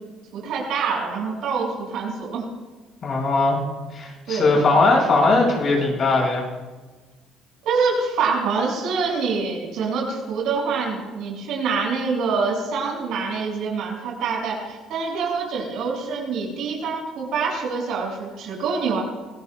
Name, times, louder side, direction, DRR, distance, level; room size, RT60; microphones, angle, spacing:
voice 1, 0.3-2.5 4.3-4.6 7.6-19.0, right 5 dB, 70° right, -1 dB, 5.9 m, -25 dB
voice 2, 3.0-3.6 3.9-6.5, left 3 dB, 50° left, -1 dB, 5.3 m, -19 dB
25.0 x 17.5 x 2.3 m, 1.3 s
hypercardioid pair, 65°, 0 cm